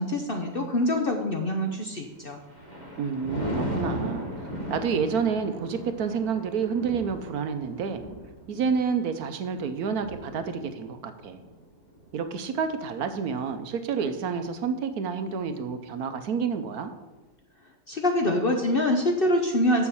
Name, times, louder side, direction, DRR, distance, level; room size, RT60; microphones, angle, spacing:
voice 1, 0.0-2.4 17.9-19.9, left 1 dB, 45° left, 3 dB, 0.8 m, -25 dB
Thunder, 2.1-13.6 14.1-14.4, equal, 25° left, 1.8 m, -37 dB
voice 2, 3.0-4.3 4.7-8.0 8.5-11.4 12.1-16.9, right 6 dB, 70° right, 9 dB, 1.1 m, -29 dB
7.1 x 6.9 x 7.0 m, 1.1 s
omnidirectional pair, 1.8 m